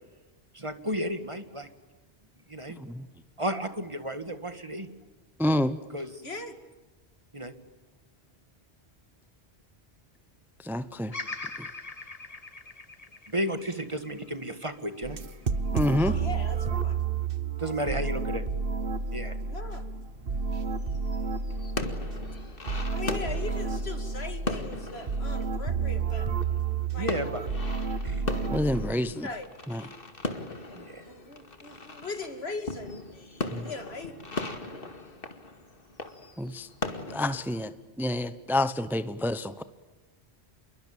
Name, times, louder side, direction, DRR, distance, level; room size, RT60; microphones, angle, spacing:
voice 1, 0.5-1.7 2.5-2.8 3.4-4.9 5.9-6.1 7.3-7.5 13.3-15.2 17.6-18.5 19.1-19.4 27.0-27.4 28.0-28.3 30.8-31.0, equal, 30° right, 10 dB, 2.0 m, -33 dB
voice 2, 5.4-5.8 10.6-11.1 15.7-16.2 28.5-29.3 29.7-29.8 33.5-33.7 36.4-36.7 37.1-39.6, left 1 dB, ahead, 13 dB, 0.9 m, -28 dB
voice 3, 6.2-6.6 16.0-17.0 17.8-18.3 19.5-19.8 22.9-26.3 26.9-27.1 29.2-29.5 31.0-34.2, left 3 dB, 75° left, 8 dB, 2.9 m, -39 dB
Bird vocalization bird call bird song, 11.1-15.3 15.9-16.6, left 3 dB, 35° left, 1.5 m, -42 dB
sound 1, 15.0-28.9, right 5 dB, 60° right, 1.4 m, -31 dB
sound 2, 20.6-26.8 27.0-37.7, left 2 dB, 60° left, 2.4 m, -38 dB
28.0 x 23.0 x 8.9 m, 1.2 s
omnidirectional pair, 1.1 m